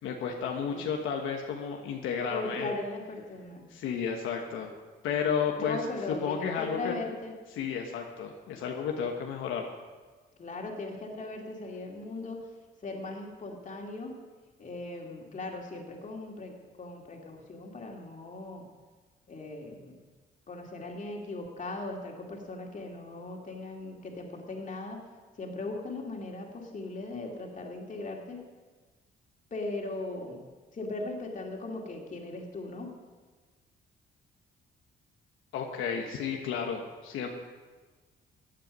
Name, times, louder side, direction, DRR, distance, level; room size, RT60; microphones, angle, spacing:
voice 1, 0.0-2.7 3.7-4.7 5.0-5.8 6.1-6.9 7.5-9.7 35.5-37.3, left 6 dB, 90° left, 2 dB, 1.3 m, -32 dB
voice 2, 2.3-3.7 5.6-7.3 10.4-12.4 12.8-14.2 14.6-18.6 19.3-20.0 20.5-25.0 25.4-28.4 29.5-30.4 30.7-32.9, left 2 dB, 40° left, 0 dB, 2.7 m, -38 dB
15.5 x 9.1 x 5.4 m, 1.4 s
cardioid pair, 90°, 20 cm